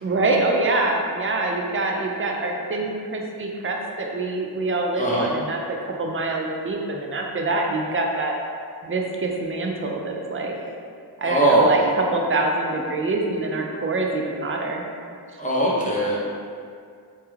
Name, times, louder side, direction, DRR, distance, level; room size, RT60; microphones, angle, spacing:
voice 1, 0.0-8.4 8.8-10.5 11.2-14.8, right 2 dB, 35° right, 1 dB, 0.4 m, -25 dB
voice 2, 5.0-5.3 11.2-11.8 15.4-16.2, right 1 dB, 20° left, -5 dB, 0.6 m, -20 dB
2.2 x 2.2 x 3.1 m, 2.2 s
cardioid pair, 45°, 39 cm